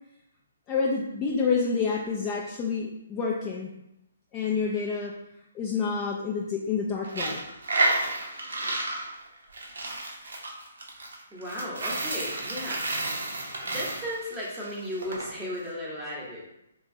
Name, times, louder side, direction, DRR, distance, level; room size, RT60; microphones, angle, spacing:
voice 1, 0.7-3.7 4.3-5.1 5.5-7.4, left 5 dB, 20° left, -3 dB, 0.3 m, -28 dB
Coin (dropping), 7.0-15.3, right 2 dB, 75° right, 0.6 m, -31 dB
voice 2, 11.3-12.8 13.6-16.4, left 1 dB, 5° right, -7 dB, 0.8 m, -35 dB
2.8 x 2.3 x 2.6 m, 0.85 s
figure-of-eight pair, 140°, 0 cm